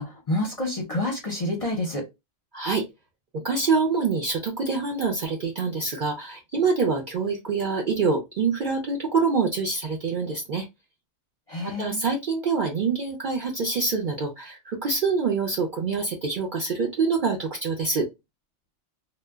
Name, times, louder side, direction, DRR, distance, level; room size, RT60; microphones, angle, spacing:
voice 1, 0.0-2.0 11.5-12.0, left 1 dB, 40° left, 0 dB, 0.5 m, -28 dB
voice 2, 2.5-2.8 3.3-10.7 11.6-18.1, right 4 dB, 60° right, 0 dB, 0.5 m, -25 dB
2.1 x 2.0 x 3.3 m, 0.22 s
omnidirectional pair, 1.3 m